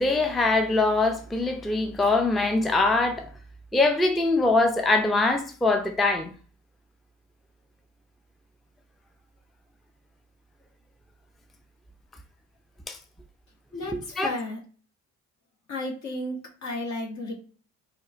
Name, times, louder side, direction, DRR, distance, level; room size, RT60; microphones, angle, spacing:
voice 1, 0.0-3.3 3.7-6.3 12.9-13.0 13.9-14.3, left 2 dB, ahead, 0.3 m, -23 dB
voice 2, 13.7-14.6 15.7-17.3, left 2 dB, 65° left, 1.2 m, -33 dB
4.2 x 2.4 x 2.4 m
cardioid pair, 90°, 30 cm